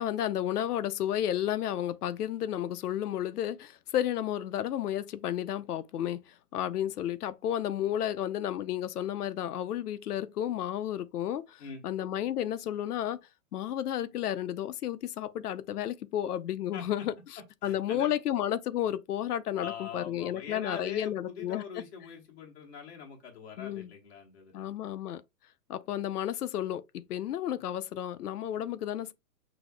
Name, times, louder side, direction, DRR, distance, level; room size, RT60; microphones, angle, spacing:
voice 1, 0.0-13.2 13.5-17.1 17.6-21.6 23.6-23.9 24.5-25.2 25.7-29.1, left 11 dB, 80° left, 0.6 m, -32 dB
voice 2, 16.7-17.0 17.6-18.1 19.6-24.7, left 6 dB, 45° left, 1.1 m, -43 dB
6.1 x 2.8 x 2.2 m
hypercardioid pair, 175°, 46 cm